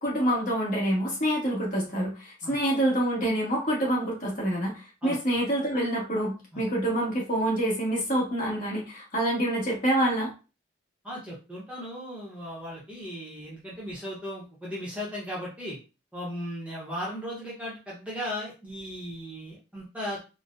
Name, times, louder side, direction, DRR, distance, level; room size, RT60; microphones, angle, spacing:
voice 1, 0.0-10.3, right 1 dB, 40° left, -3 dB, 1.3 m, -27 dB
voice 2, 11.0-15.8 16.1-20.2, equal, 5° right, -6 dB, 0.8 m, -36 dB
3.9 x 2.1 x 2.5 m, 0.31 s
head